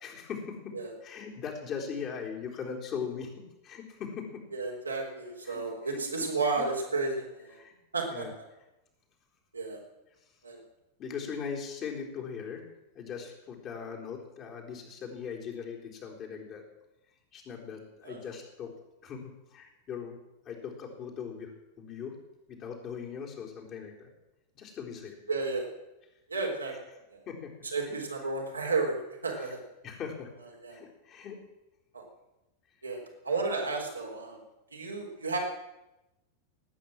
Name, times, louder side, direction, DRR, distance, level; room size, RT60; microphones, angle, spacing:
voice 1, 0.0-0.7 1.0-3.3 3.6-4.4 5.4-6.3 6.6-6.7 7.6-8.3 11.0-12.6 12.9-16.6 17.3-18.7 19.0-20.2 20.5-22.2 22.5-24.1 24.5-25.2 27.3-27.5 27.8-28.0 29.3-29.5 29.8-30.3 30.7-31.4, left 6 dB, 35° left, 0 dB, 3.8 m, -40 dB
voice 2, 4.5-7.6 7.9-8.2 9.5-9.8 10.4-10.6 18.0-18.2 25.3-25.7 26.3-26.7 27.1-27.2 27.6-29.6 30.6-30.8 31.9-32.0 32.8-34.4 34.7-35.4, right 3 dB, 80° right, -1 dB, 3.8 m, -32 dB
19.0 x 9.0 x 7.5 m, 0.95 s
figure-of-eight pair, 90°, 0 cm